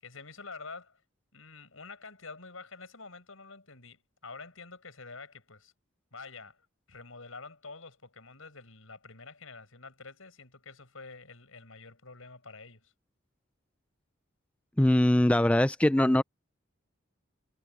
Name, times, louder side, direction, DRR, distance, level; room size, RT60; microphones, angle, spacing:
voice 1, 0.0-1.0 1.3-5.7 6.1-12.9, left 4 dB, 80° left, 6.0 m, -47 dB
voice 2, 14.8-16.2, left 1 dB, 5° left, 0.3 m, -22 dB
head